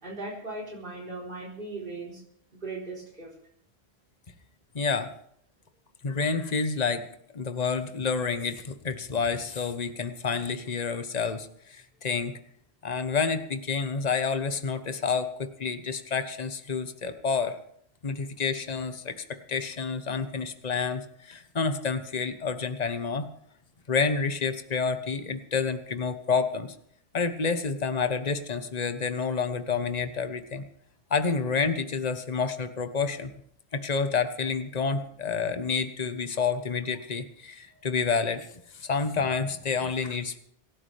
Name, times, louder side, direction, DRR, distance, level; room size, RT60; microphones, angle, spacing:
voice 1, 0.0-2.2 2.5-3.3, right 2 dB, 50° right, -5 dB, 4.4 m, -38 dB
voice 2, 4.7-5.1 6.0-7.1 7.3-12.3 12.8-17.6 18.0-23.3 23.9-26.7 27.1-30.6 31.1-33.3 33.7-38.4 38.7-40.4, left 5 dB, 40° left, 9 dB, 1.3 m, -29 dB
26.5 x 12.0 x 3.5 m, 0.67 s
omnidirectional pair, 1.1 m